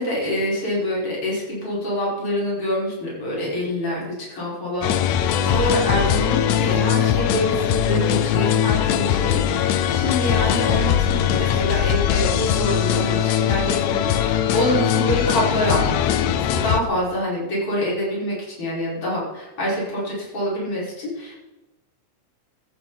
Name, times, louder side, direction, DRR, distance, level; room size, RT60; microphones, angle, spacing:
voice 1, 0.0-4.0 4.3-21.4, equal, 45° left, -6 dB, 6.6 m, -26 dB
sound 1, 4.8-16.8, left 10 dB, 75° left, 2.0 m, -21 dB
15.5 x 13.0 x 4.2 m, 1.1 s
omnidirectional pair, 3.5 m